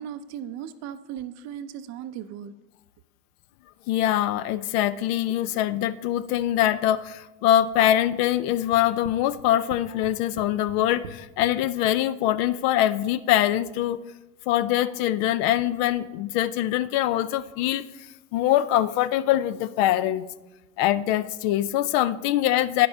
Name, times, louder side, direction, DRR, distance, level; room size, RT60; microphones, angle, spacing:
voice 1, 0.0-2.5, right 9 dB, 40° right, 12 dB, 0.5 m, -37 dB
voice 2, 3.9-14.0 14.5-17.8 18.3-20.3 20.8-22.9, left 12 dB, 50° left, 16 dB, 0.4 m, -23 dB
sound 1, 8.7-11.5, right 5 dB, 85° right, 0.8 m, -42 dB
9.9 x 6.9 x 3.3 m, 1.1 s
hypercardioid pair, 95°, 40 cm